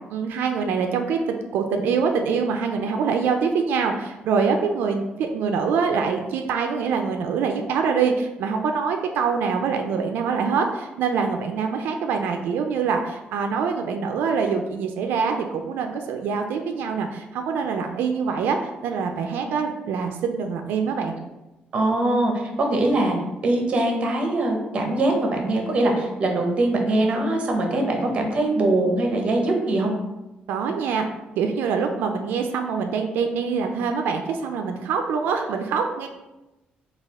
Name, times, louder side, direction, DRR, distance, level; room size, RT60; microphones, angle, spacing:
voice 1, 0.1-18.6 18.8-21.2 30.5-31.0 31.4-36.1, right 5 dB, 90° right, 4 dB, 0.3 m, -24 dB
voice 2, 21.7-22.3 22.6-23.2 23.4-29.9, right 2 dB, 35° right, 2 dB, 0.6 m, -22 dB
4.2 x 2.3 x 3.4 m, 1.0 s
cardioid pair, 175°, 3 cm